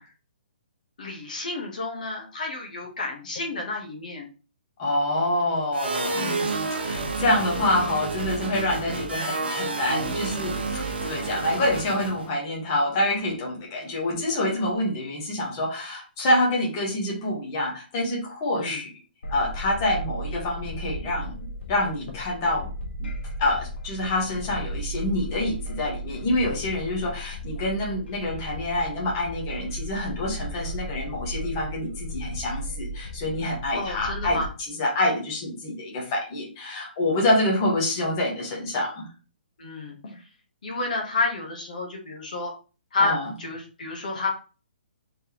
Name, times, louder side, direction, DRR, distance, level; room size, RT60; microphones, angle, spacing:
voice 1, 1.0-4.3 6.2-6.5 13.8-13.9 18.6-18.8 20.3-20.4 33.7-34.5 39.6-40.2 40.6-42.5 42.9-44.3, left 3 dB, 50° left, 0 dB, 1.0 m, -30 dB
voice 2, 4.8-18.9 19.3-22.7 23.0-23.1 23.4-34.4 34.8-39.1 43.0-43.3, left 1 dB, 20° left, -3 dB, 1.2 m, -27 dB
sound 1, 5.7-12.3, right 3 dB, 75° right, 1.0 m, -30 dB
sound 2, 19.2-34.5, equal, 85° left, 1.0 m, -35 dB
4.3 x 3.4 x 2.9 m, 0.36 s
hypercardioid pair, 180°, 6 cm